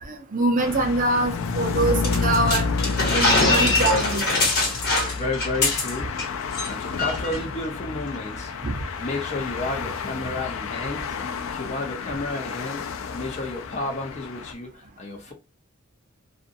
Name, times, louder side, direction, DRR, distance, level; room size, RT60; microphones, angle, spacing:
voice 1, 0.0-2.7 3.1-4.3 8.6-8.8, right 2 dB, 40° right, 0.7 m, -24 dB
sound 1, 0.6-14.5, left 5 dB, 85° left, 0.4 m, -30 dB
sound 2, 2.0-6.3 6.5-6.7 7.0-7.4, left 2 dB, 55° left, 1.5 m, -23 dB
voice 2, 5.1-6.1 6.7-8.5 9.0-11.1 11.5-12.8 13.1-15.3, left 2 dB, 35° left, 0.6 m, -31 dB
2.5 x 2.5 x 2.4 m
head